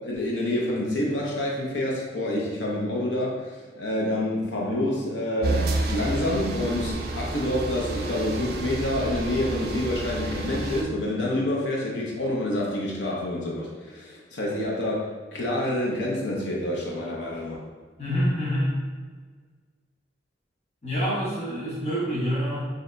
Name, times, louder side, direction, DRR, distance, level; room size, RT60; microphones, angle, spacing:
voice 1, 0.0-17.6, left 1 dB, 80° left, -3 dB, 0.8 m, -28 dB
sound 1, 5.4-10.8, right 2 dB, 60° right, 0.4 m, -30 dB
voice 2, 18.0-18.8 20.8-22.6, equal, 35° left, -8 dB, 0.9 m, -26 dB
6.4 x 2.7 x 2.2 m, 1.5 s
head